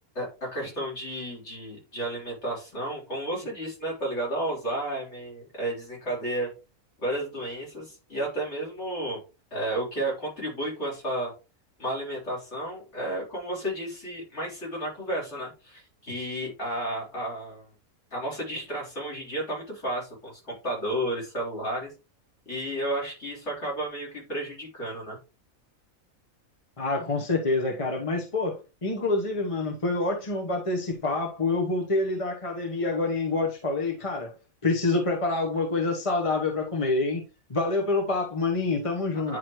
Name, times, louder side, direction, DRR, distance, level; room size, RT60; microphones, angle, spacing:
voice 1, 0.2-6.5 7.0-9.2 9.5-11.3 11.8-17.7 18.1-21.9 22.5-25.2 39.3-39.4, right 1 dB, 50° left, 4.1 m, -32 dB
voice 2, 26.8-34.3 34.6-37.2 37.5-39.4, left 3 dB, 25° left, 1.0 m, -27 dB
9.8 x 4.5 x 3.1 m
omnidirectional pair, 1.5 m